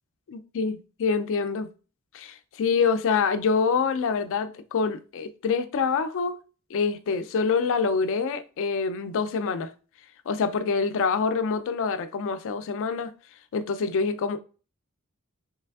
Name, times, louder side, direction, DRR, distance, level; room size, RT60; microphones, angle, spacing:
voice 1, 0.3-1.7 2.1-6.4 6.7-9.7 10.3-13.1 13.5-14.4, left 5 dB, 65° left, 0.4 m, -26 dB
3.2 x 3.2 x 2.3 m
head